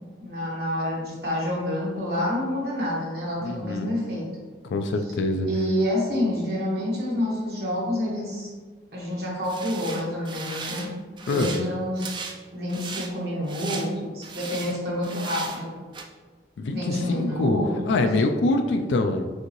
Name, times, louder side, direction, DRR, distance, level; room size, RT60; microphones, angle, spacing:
voice 1, 0.2-4.3 5.5-8.5 8.9-10.9 11.3-12.2 12.5-15.7 16.7-17.9, left 1 dB, 60° right, -4 dB, 1.4 m, -28 dB
voice 2, 3.4-3.9 4.6-5.5 11.3-11.6 16.6-17.6 17.9-19.3, left 2 dB, 85° left, 6 dB, 0.3 m, -24 dB
sound 1, 9.4-10.9 11.2-11.6 12.0-12.4 12.7-13.1 13.5-13.9 14.2-14.8 15.0-15.6 15.9-16.0, right 4 dB, 25° right, 0.4 m, -36 dB
6.2 x 2.7 x 3.0 m, 1.4 s
head